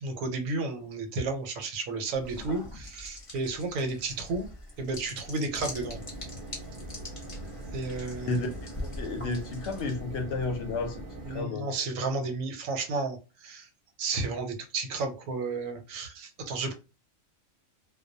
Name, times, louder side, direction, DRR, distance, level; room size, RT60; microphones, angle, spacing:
voice 1, 0.0-4.5 4.8-6.0 7.7-8.4 11.3-13.7 14.0-16.7, right 3 dB, 85° right, 1.0 m, -32 dB
sound 1, 2.1-10.2, left 2 dB, 30° left, 0.6 m, -44 dB
sound 2, 5.5-11.4, right 1 dB, 50° right, 0.7 m, -42 dB
voice 2, 8.8-11.0 11.3-11.7, left 3 dB, 65° left, 0.8 m, -32 dB
2.2 x 2.1 x 2.6 m
omnidirectional pair, 1.4 m